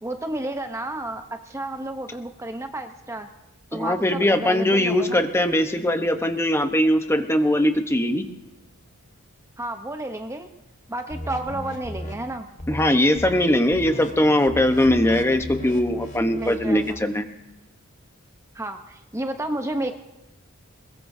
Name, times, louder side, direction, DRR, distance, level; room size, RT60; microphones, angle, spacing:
voice 1, 0.0-3.3 3.7-5.2 9.6-10.5 10.9-12.5 16.3-17.0 18.5-19.9, right 1 dB, 15° right, 6 dB, 0.8 m, -31 dB
voice 2, 3.7-8.2 12.7-17.3, left 1 dB, 10° left, 7 dB, 0.9 m, -21 dB
sound 1, 11.1-12.1 12.6-12.9 13.2-13.5 13.7-17.0, left 1 dB, 35° left, 1.9 m, -36 dB
22.0 x 21.5 x 2.7 m, 0.97 s
head